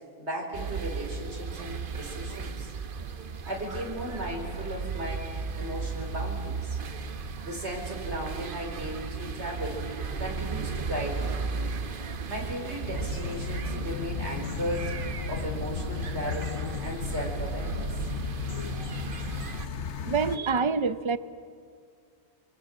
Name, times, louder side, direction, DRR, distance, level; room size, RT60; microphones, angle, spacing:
voice 1, 0.2-2.7 3.4-6.8 7.4-9.9 10.2-11.4 12.3-15.0 15.3-18.0, equal, 80° right, 5.0 m, -36 dB
sound 1, 0.5-19.7, right 5 dB, 55° right, 1.1 m, -35 dB
sound 2, 12.9-20.4, left 6 dB, 90° left, 1.4 m, -35 dB
voice 2, 20.1-21.2, right 5 dB, 30° right, 0.7 m, -26 dB
26.5 x 24.0 x 7.5 m
omnidirectional pair, 1.1 m